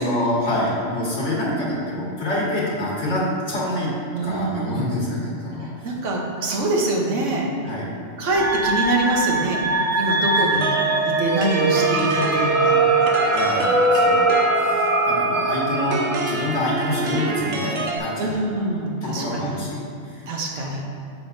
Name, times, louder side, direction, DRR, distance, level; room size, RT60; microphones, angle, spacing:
voice 1, 0.0-3.9 4.2-5.9 7.6-7.9 8.2-8.4 9.9-10.0 13.3-18.4 19.0-20.3 20.6-20.7, left 1 dB, 75° left, -6 dB, 2.1 m, -26 dB
voice 2, 4.1-4.9 5.6-7.5 8.2-9.6 9.9-10.7 11.0-12.8 16.6-16.7 18.2-19.6 20.3-20.9, right 2 dB, 80° right, -1 dB, 1.3 m, -25 dB
sound 1, 8.2-16.4, right 1 dB, 20° right, 0.4 m, -23 dB
sound 2, 10.6-18.0, right 4 dB, 60° right, 1.0 m, -24 dB
7.7 x 7.1 x 2.6 m, 2.5 s
omnidirectional pair, 1.2 m